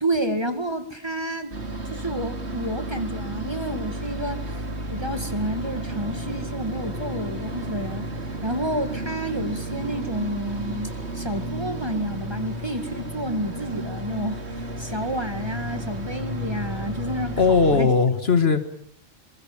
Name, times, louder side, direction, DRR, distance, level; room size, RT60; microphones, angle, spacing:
voice 1, 0.0-1.6 1.9-4.6 4.9-8.1 8.4-17.9, right 1 dB, 20° right, 8 dB, 2.0 m, -30 dB
sound 1, 1.5-17.8, right 1 dB, 60° right, 2.8 m, -32 dB
voice 2, 17.4-18.7, left 4 dB, 55° left, 10 dB, 1.9 m, -19 dB
26.0 x 22.5 x 7.3 m, 0.64 s
omnidirectional pair, 1.3 m